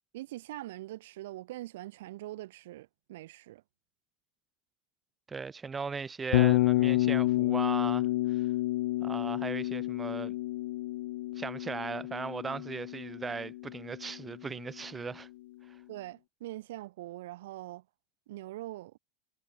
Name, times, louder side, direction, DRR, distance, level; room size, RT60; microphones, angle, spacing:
voice 1, 0.1-3.6 15.9-17.9 18.3-19.0, right 16 dB, 70° right, 1.9 m, -43 dB
voice 2, 5.3-8.5 9.0-10.3 11.4-15.3 15.7-15.8, right 5 dB, 20° right, 0.8 m, -38 dB
Bass guitar, 6.3-14.4, left 17 dB, 65° left, 0.5 m, -29 dB
hypercardioid pair, 90°, 0 cm